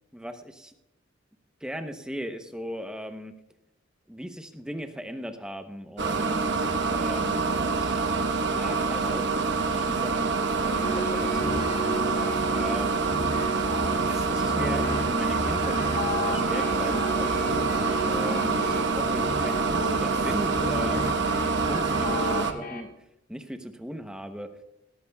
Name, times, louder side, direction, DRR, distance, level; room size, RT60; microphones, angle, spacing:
voice 1, 0.1-0.7 1.6-3.3 4.1-7.4 7.7-8.0 8.4-11.9 12.5-12.9 14.1-22.9 23.3-24.5, equal, 5° right, 6 dB, 0.8 m, -38 dB
sound 1, 6.0-22.5, right 4 dB, 65° right, 1.1 m, -26 dB
sound 2, 10.6-22.8, equal, 50° left, 2.0 m, -33 dB
18.0 x 14.0 x 2.3 m, 0.86 s
head